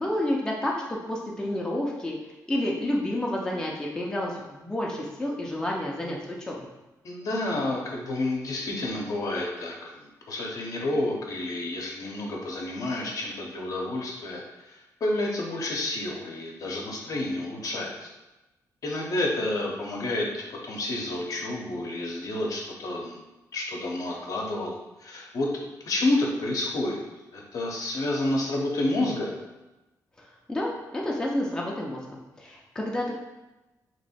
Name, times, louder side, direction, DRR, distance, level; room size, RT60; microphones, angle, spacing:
voice 1, 0.0-2.1 2.5-6.6 30.5-32.0 32.4-33.1, left 1 dB, 10° left, -3 dB, 0.6 m, -29 dB
voice 2, 7.0-18.1 18.8-23.2 23.5-27.0 27.3-29.4, left 2 dB, 55° left, -1 dB, 0.8 m, -30 dB
3.0 x 2.7 x 4.2 m, 1.0 s
cardioid pair, 120°, 7 cm